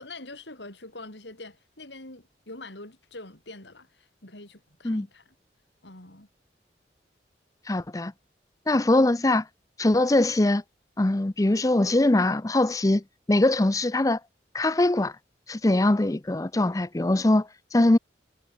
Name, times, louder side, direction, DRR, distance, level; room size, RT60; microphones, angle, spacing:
voice 1, 0.0-5.3 5.8-6.3, left 2 dB, 80° left, 5.8 m, -44 dB
voice 2, 7.7-8.1 8.7-9.5 9.8-10.6 11.0-13.0 13.3-14.2 14.5-15.1 15.5-18.0, left 2 dB, 20° left, 0.5 m, -22 dB
head